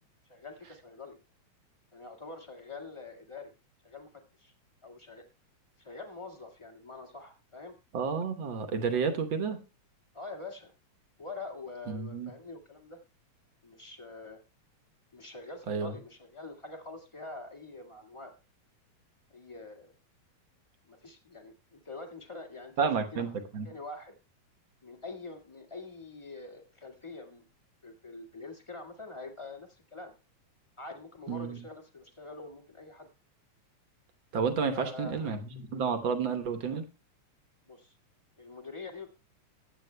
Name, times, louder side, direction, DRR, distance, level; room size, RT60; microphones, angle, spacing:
voice 1, 0.3-1.2 1.9-3.5 3.8-4.5 4.8-5.2 5.8-7.7 10.1-10.7 11.2-13.0 13.6-14.4 15.1-18.3 19.3-19.9 20.8-24.2 24.8-27.4 27.8-30.1 30.8-33.1 34.7-35.4 37.7-38.0 38.4-39.2, left 3 dB, 15° left, 3 dB, 1.1 m, -45 dB
voice 2, 7.9-9.6 11.9-12.3 15.7-15.9 22.8-23.3 23.5-23.7 31.3-31.6 34.3-36.8, right 5 dB, 55° right, 6 dB, 1.4 m, -30 dB
22.5 x 8.8 x 2.2 m, 0.31 s
omnidirectional pair, 3.4 m